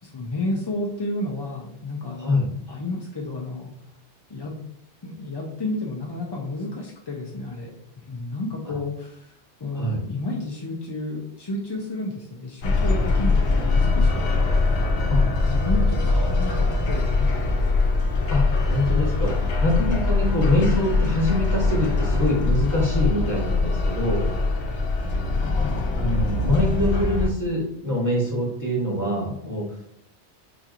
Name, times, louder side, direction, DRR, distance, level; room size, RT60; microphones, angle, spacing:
voice 1, 0.0-2.4 2.7-3.7 4.3-4.5 5.0-7.7 8.0-17.7 25.4-25.8, left 2 dB, 40° left, -3 dB, 0.3 m, -32 dB
sound 1, 12.6-27.3, left 3 dB, 75° left, 0.9 m, -22 dB
voice 2, 18.3-24.3 26.0-29.7, left 1 dB, 15° left, -2 dB, 1.0 m, -24 dB
4.9 x 2.8 x 2.4 m, 0.71 s
omnidirectional pair, 1.1 m